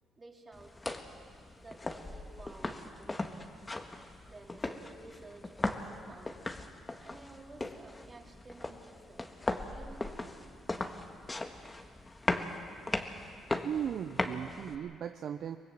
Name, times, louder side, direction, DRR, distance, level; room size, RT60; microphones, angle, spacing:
voice 1, 0.2-0.7 1.6-3.4 4.2-6.4 6.7-9.3 9.5-10.3, right 3 dB, 30° right, 0 dB, 4.0 m, -53 dB
sound 1, 0.5-14.7, left 2 dB, 20° left, 1.6 m, -38 dB
voice 2, 13.6-15.6, right 9 dB, 60° right, 9 dB, 0.6 m, -37 dB
24.0 x 19.0 x 7.6 m, 2.3 s
supercardioid pair, 75°, 0 cm